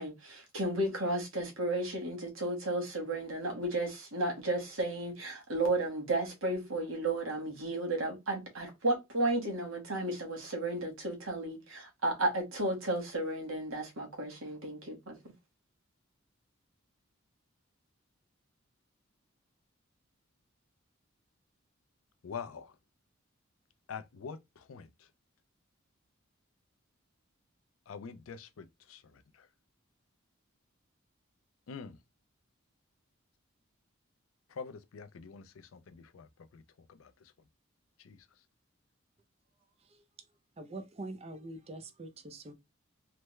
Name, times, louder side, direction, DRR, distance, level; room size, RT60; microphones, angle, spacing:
voice 1, 0.0-15.1, right 2 dB, 80° right, 1.4 m, -33 dB
voice 2, 22.2-22.7 23.9-24.9 27.9-29.0 31.7-32.0 34.6-36.3 36.5-36.6 37.0-37.1 38.0-38.2, left 6 dB, 85° left, 0.5 m, -44 dB
voice 3, 40.6-42.5, right 2 dB, 30° right, 0.5 m, -44 dB
3.3 x 2.1 x 3.1 m
head